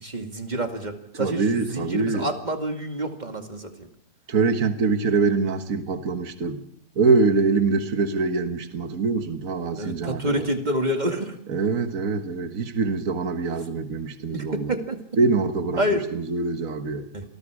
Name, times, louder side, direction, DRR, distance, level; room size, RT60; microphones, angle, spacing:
voice 1, 0.0-3.9 9.8-11.4 14.3-15.0 15.8-16.0 17.1-17.2, equal, 25° right, 4 dB, 2.3 m, -28 dB
voice 2, 1.1-2.3 4.3-6.6 6.9-10.5 11.5-14.7 15.2-15.8 16.1-17.1, right 4 dB, 55° right, 7 dB, 1.8 m, -24 dB
28.0 x 20.0 x 4.9 m, 0.67 s
omnidirectional pair, 1.8 m